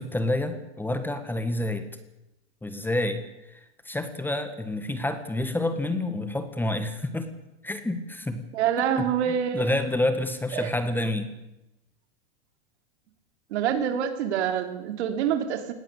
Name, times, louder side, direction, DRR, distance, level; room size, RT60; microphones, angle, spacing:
voice 1, 0.0-1.9 2.6-3.2 3.5-3.6 3.8-7.3 7.6-8.4 9.5-11.3, left 1 dB, 5° left, 10 dB, 1.6 m, -28 dB
voice 2, 8.5-9.8 10.5-10.7 13.5-15.7, right 8 dB, 75° right, 7 dB, 3.3 m, -26 dB
19.5 x 17.0 x 8.3 m, 0.94 s
supercardioid pair, 140°, 34 cm